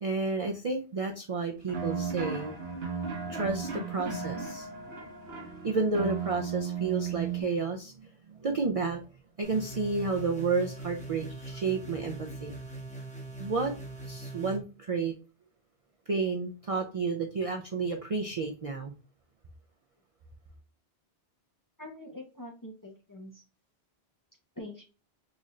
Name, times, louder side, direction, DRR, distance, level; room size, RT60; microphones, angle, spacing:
voice 1, 0.0-2.5 3.3-4.7 5.6-7.9 8.3-9.0 9.4-12.5 13.4-13.7 14.1-15.1 16.1-18.9, right 4 dB, 50° right, 3 dB, 0.4 m, -31 dB
sound 1, 1.7-7.4, right 6 dB, 70° right, 1.1 m, -35 dB
Mallet percussion, 4.0-6.3, left 2 dB, 65° left, 1.7 m, -47 dB
sound 2, 9.4-14.6, right 2 dB, 10° left, 0.8 m, -42 dB
voice 2, 21.8-23.4 24.6-24.8, left 1 dB, 25° left, 0 dB, 0.5 m, -44 dB
4.0 x 2.5 x 3.1 m, 0.33 s
omnidirectional pair, 1.1 m